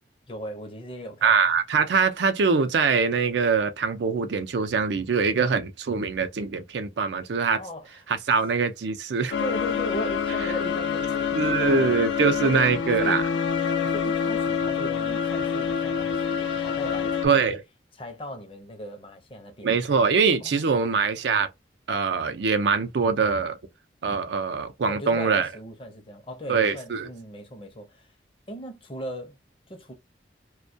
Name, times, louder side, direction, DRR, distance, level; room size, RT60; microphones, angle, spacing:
voice 1, 0.3-1.4 7.6-7.9 9.4-11.3 11.6-11.9 12.2-12.7 13.0-13.2 13.8-17.5 18.0-19.7 20.4-20.9 24.8-28.1 28.5-29.4 29.7-29.9, equal, 30° left, 0.6 m, -37 dB
voice 2, 1.2-7.6 8.1-9.3 11.3-13.2 17.2-17.6 19.6-21.5 21.9-23.6 24.0-25.5 26.5-27.1, right 5 dB, 70° right, 0.4 m, -23 dB
sound 1, 9.3-17.3, left 6 dB, 85° left, 0.5 m, -26 dB
2.2 x 2.2 x 2.5 m
head